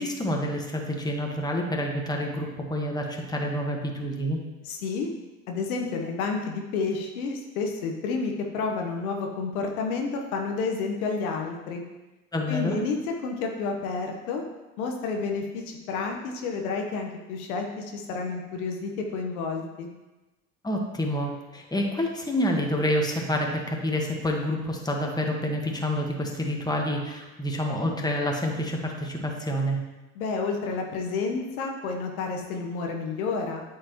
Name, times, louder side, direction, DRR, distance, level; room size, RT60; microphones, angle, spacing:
voice 1, 0.0-4.4 12.3-12.8 20.6-29.8, equal, 10° left, 1 dB, 1.4 m, -28 dB
voice 2, 4.6-5.1 5.5-11.8 12.5-14.4 14.8-19.9 30.1-33.6, left 4 dB, 80° left, 2 dB, 1.2 m, -30 dB
8.8 x 6.6 x 3.0 m, 1.1 s
hypercardioid pair, 75°, 42 cm